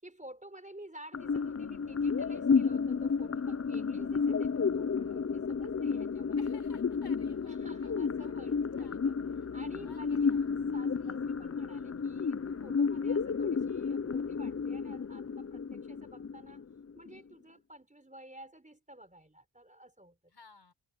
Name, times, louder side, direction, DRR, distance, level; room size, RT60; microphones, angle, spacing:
voice 1, 0.0-6.5 7.5-9.2 9.5-10.3 10.7-16.6 16.9-20.3, right 1 dB, 15° right, 4.4 m, -52 dB
sound 1, 1.1-17.1, left 5 dB, 30° left, 0.6 m, -32 dB
voice 2, 6.4-7.9 8.2-8.3 8.8-9.0 9.8-10.5 11.0-11.2 20.3-20.7, left 4 dB, 55° left, 7.1 m, -58 dB
wide cardioid pair, 70°, 49 cm